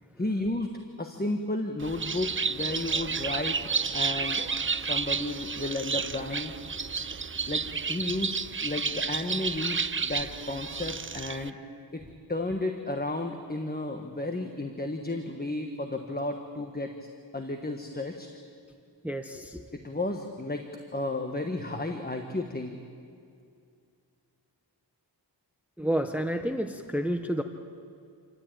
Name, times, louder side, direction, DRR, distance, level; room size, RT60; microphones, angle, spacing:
voice 1, 0.2-0.7 1.0-3.6 3.9-4.4 4.8-6.5 7.5-11.6 11.9-16.9 17.3-18.3 19.7-22.8, left 2 dB, 20° left, 4 dB, 1.3 m, -33 dB
Bird, 1.8-11.5, right 5 dB, 30° right, 0.5 m, -31 dB
voice 2, 19.0-19.6 25.8-27.4, right 1 dB, 5° right, 6 dB, 0.9 m, -30 dB
27.5 x 13.0 x 9.0 m, 2.4 s
wide cardioid pair, 80°, 42 cm